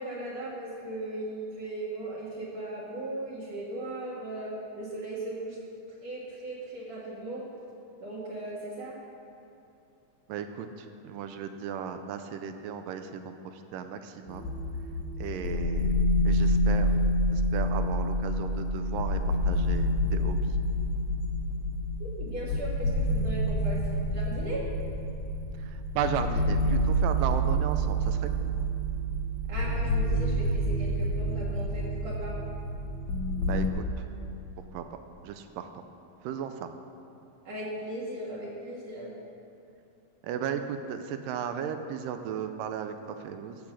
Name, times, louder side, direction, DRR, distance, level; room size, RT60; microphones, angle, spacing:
voice 1, 0.0-5.6 6.0-7.5 8.0-9.0 22.0-23.8 24.1-24.7 29.5-32.4 37.4-39.1, right 1 dB, 55° right, -6 dB, 2.5 m, -37 dB
voice 2, 10.3-13.3 13.7-14.5 15.2-15.9 16.3-16.9 17.3-20.6 25.6-28.3 33.5-33.8 34.7-34.8 35.2-35.7 36.2-36.7 40.2-43.6, right 8 dB, 90° right, 8 dB, 2.3 m, -35 dB
sound 1, 14.3-33.7, equal, 85° left, 3.0 m, -28 dB
15.0 x 6.2 x 7.5 m, 2.6 s
omnidirectional pair, 3.9 m